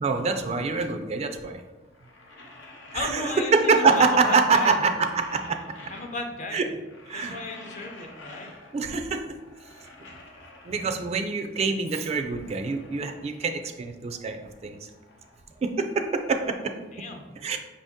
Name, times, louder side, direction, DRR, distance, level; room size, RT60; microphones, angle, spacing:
voice 1, 0.0-1.6 2.9-4.9 5.1-5.6 6.5-6.6 7.1-7.4 8.7-9.4 10.6-14.9 15.6-16.7 17.4-17.6, right 4 dB, 35° right, 6 dB, 0.3 m, -25 dB
sound 1, 1.8-4.0 4.3-6.5 6.8-9.0 9.3-11.4 11.8-13.8 14.1-16.3, left 2 dB, 90° left, 0.8 m, -49 dB
voice 2, 2.9-4.8 5.9-6.7 7.1-8.5 16.9-17.3, left 2 dB, 40° left, 3 dB, 0.6 m, -34 dB
5.5 x 2.7 x 3.5 m, 1.2 s
head